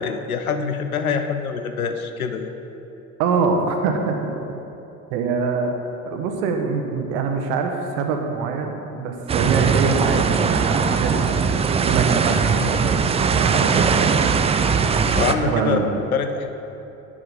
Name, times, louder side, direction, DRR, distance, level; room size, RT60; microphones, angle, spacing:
voice 1, 0.0-2.5 15.1-15.8 16.1-16.5, left 6 dB, 80° left, 8 dB, 0.7 m, -25 dB
voice 2, 3.2-4.3 5.1-11.5 11.7-14.3 15.3-16.0, right 5 dB, 60° right, 4 dB, 1.3 m, -24 dB
sound 1, 9.3-15.3, right 5 dB, 15° right, 0.4 m, -20 dB
10.5 x 8.8 x 4.2 m, 2.9 s
figure-of-eight pair, 60°, 42 cm